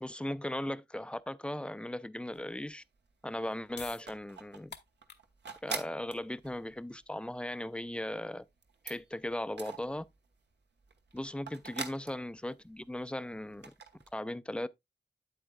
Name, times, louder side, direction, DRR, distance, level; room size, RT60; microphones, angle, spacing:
voice 1, 0.0-2.8 3.2-4.7 5.6-8.4 8.8-10.1 11.1-13.7 14.1-14.7, left 1 dB, 5° left, 0.4 m, -38 dB
sound 1, 2.3-3.1 3.3-10.4 10.8-13.1 13.4-14.1, right 5 dB, 75° right, 1.2 m, -44 dB
sound 2, 3.7-10.0, left 6 dB, 75° left, 0.9 m, -54 dB
8.6 x 8.2 x 2.3 m
wide cardioid pair, 110°, 18 cm